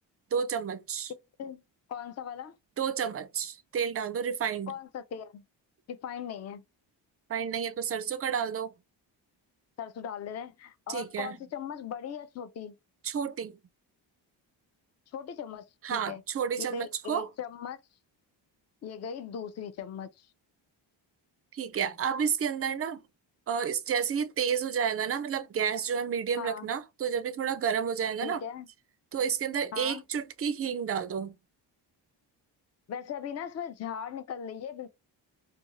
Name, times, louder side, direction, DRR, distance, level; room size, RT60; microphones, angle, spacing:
voice 1, 0.3-1.1 2.8-4.7 7.3-8.7 10.9-11.3 13.0-13.6 15.8-17.3 21.5-23.0 23.5-28.4 29.1-31.4, right 7 dB, 35° right, 0.4 m, -30 dB
voice 2, 1.9-2.6 4.7-5.4 5.9-6.6 9.8-12.7 15.1-16.2 16.6-17.8 18.8-20.3 26.4-26.7 28.2-28.7 29.7-30.0 32.9-34.9, left 8 dB, 35° left, 0.4 m, -39 dB
2.5 x 2.3 x 2.8 m
cardioid pair, 80°, 45 cm